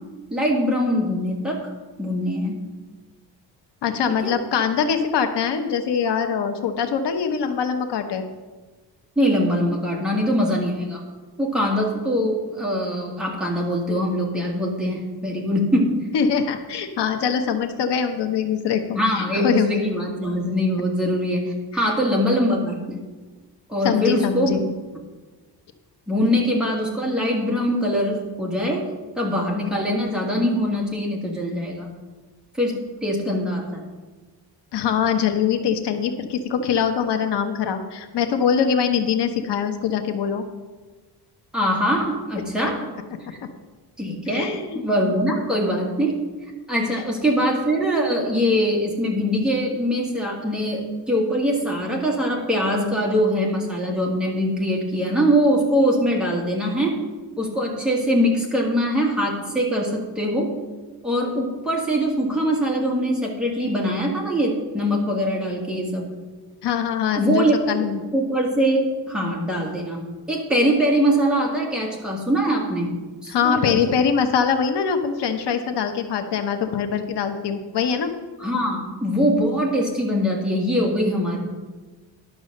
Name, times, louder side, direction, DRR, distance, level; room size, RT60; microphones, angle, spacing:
voice 1, 0.3-1.7 2.0-2.6 4.2-4.3 9.1-11.0 11.4-15.9 18.9-23.0 23.7-24.6 26.1-28.8 29.2-31.9 32.5-32.7 33.0-33.8 41.5-42.8 43.3-43.4 44.0-46.2 46.7-57.0 57.4-60.5 61.0-66.1 67.2-67.8 68.1-70.0 70.3-72.9 73.2-73.8 78.4-81.4, equal, ahead, -3 dB, 1.7 m, -22 dB
voice 2, 3.8-8.3 16.1-19.8 23.8-24.7 34.7-40.4 44.3-45.1 46.9-47.0 66.6-68.0 73.3-78.1, left 7 dB, 75° left, 6 dB, 1.0 m, -23 dB
11.0 x 6.1 x 6.5 m, 1.3 s
wide cardioid pair, 175°, 42 cm